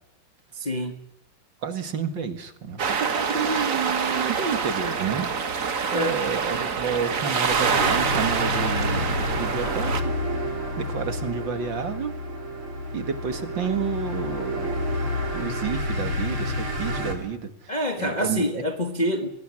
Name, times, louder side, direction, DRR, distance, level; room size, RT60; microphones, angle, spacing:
voice 1, 0.5-1.0 5.9-6.2 17.7-19.3, equal, 25° left, 1.4 m, -26 dB
voice 2, 1.6-5.3 5.9-10.5 10.8-12.1 12.9-14.8 15.3-17.7 18.0-18.6, right 6 dB, 60° right, 2.6 m, -30 dB
sound 1, 2.8-10.0, right 5 dB, 40° right, 1.6 m, -26 dB
sound 2, 7.3-17.1, left 1 dB, 75° right, 4.8 m, -29 dB
21.5 x 17.0 x 9.9 m
omnidirectional pair, 2.4 m